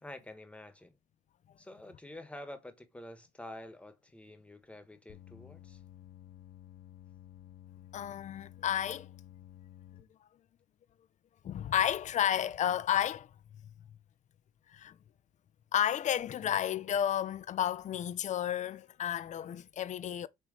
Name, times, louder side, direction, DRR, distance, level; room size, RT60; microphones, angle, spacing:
voice 1, 0.0-1.0 1.6-5.8, left 1 dB, 5° left, 1.4 m, -48 dB
sound 1, 5.1-10.0, left 11 dB, 65° left, 1.2 m, -53 dB
voice 2, 7.9-9.1 11.4-13.3 14.7-15.0 15.7-20.3, left 10 dB, 45° left, 0.6 m, -31 dB
7.6 x 3.2 x 4.9 m
cardioid pair, 110°, 17 cm